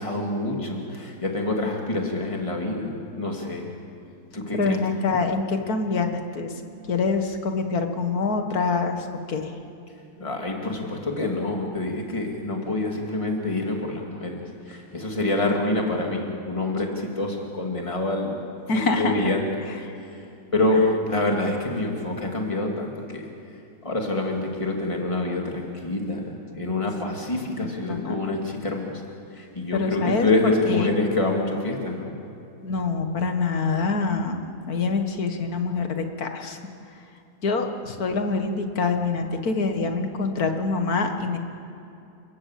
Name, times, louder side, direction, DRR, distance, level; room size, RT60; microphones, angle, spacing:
voice 1, 0.0-3.7 4.3-4.8 10.2-14.4 14.7-18.4 18.7-19.5 20.0-20.2 20.5-23.2 23.8-28.9 29.3-32.1, left 2 dB, 20° left, 0 dB, 2.8 m, -26 dB
voice 2, 4.5-6.5 6.9-9.5 18.7-19.3 27.6-28.4 29.7-30.3 30.7-30.9 32.6-36.6 37.4-41.4, left 4 dB, 65° left, 5 dB, 2.1 m, -25 dB
29.5 x 17.0 x 7.6 m, 2.7 s
omnidirectional pair, 1.8 m